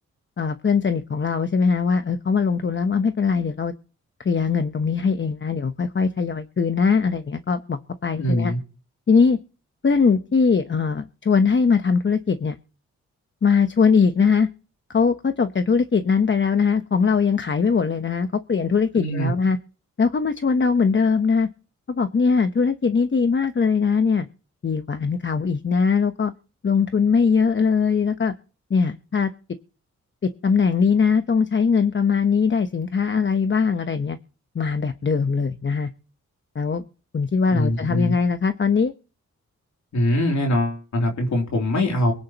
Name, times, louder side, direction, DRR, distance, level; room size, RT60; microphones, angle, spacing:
voice 1, 0.4-3.7 4.2-8.5 9.1-9.4 9.8-12.6 13.4-14.5 14.9-19.6 20.0-21.5 21.9-24.3 24.6-26.3 26.6-28.3 28.7-29.3 30.4-34.2 34.5-35.9 36.5-36.8 37.1-38.9, left 5 dB, 40° left, 9 dB, 1.0 m, -21 dB
voice 2, 8.1-8.6 18.9-19.3 37.5-38.1 39.9-42.1, left 1 dB, 70° left, 1 dB, 3.3 m, -22 dB
23.5 x 10.0 x 3.0 m, 0.38 s
cardioid pair, 70°, 30 cm